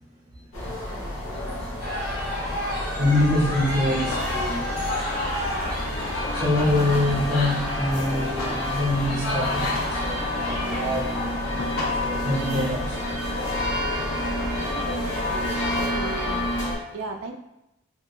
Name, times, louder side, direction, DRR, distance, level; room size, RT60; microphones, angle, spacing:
sound 1, 0.5-16.8, left 1 dB, 75° left, 0.9 m, -30 dB
sound 2, 1.8-10.8, left 1 dB, 45° left, 0.8 m, -32 dB
voice 1, 3.0-4.8 6.3-11.1 12.0-13.0, left 1 dB, 20° right, -4 dB, 0.6 m, -25 dB
sound 3, 4.0-15.9, left 1 dB, 90° left, 0.5 m, -34 dB
voice 2, 14.6-16.4 16.9-17.3, right 3 dB, 75° right, 4 dB, 0.4 m, -36 dB
2.8 x 2.3 x 2.3 m, 0.89 s
head